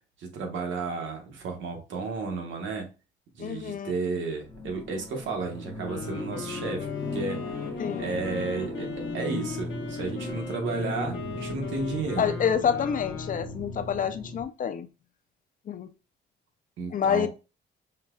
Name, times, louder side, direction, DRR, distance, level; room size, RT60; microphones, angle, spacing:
voice 1, 0.2-2.9 3.3-6.9 7.1-7.7 8.0-12.4 16.8-17.3, right 4 dB, 75° right, 3 dB, 1.1 m, -33 dB
voice 2, 3.4-3.9 7.8-8.1 12.2-14.9 15.7-15.9 16.9-17.3, left 8 dB, 45° left, 11 dB, 0.4 m, -27 dB
sound 1, 4.5-14.4, left 1 dB, 20° left, 0.9 m, -37 dB
Wind instrument woodwind instrument, 5.8-13.6, left 6 dB, 70° left, 0.9 m, -39 dB
5.6 x 2.3 x 2.3 m, 0.30 s
cardioid pair, 90°, 20 cm